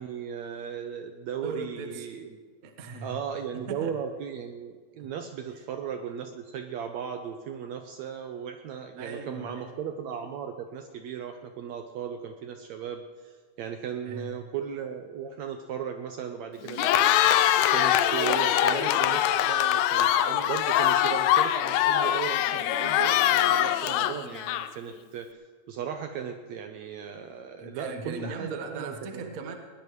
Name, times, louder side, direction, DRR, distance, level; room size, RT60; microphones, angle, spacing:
voice 1, 0.0-2.3 3.0-13.3 13.6-17.1 17.7-25.3 25.7-29.2, right 8 dB, 75° right, 6 dB, 1.7 m, -36 dB
voice 2, 1.4-2.1 2.6-3.2 3.7-3.9 5.0-5.1 9.0-9.7 14.0-14.3 27.6-29.5, right 3 dB, 55° right, 4 dB, 1.0 m, -38 dB
Cheering, 16.6-24.9, left 11 dB, 80° left, 1.7 m, -23 dB
20.5 x 18.5 x 3.2 m, 1.5 s
omnidirectional pair, 3.8 m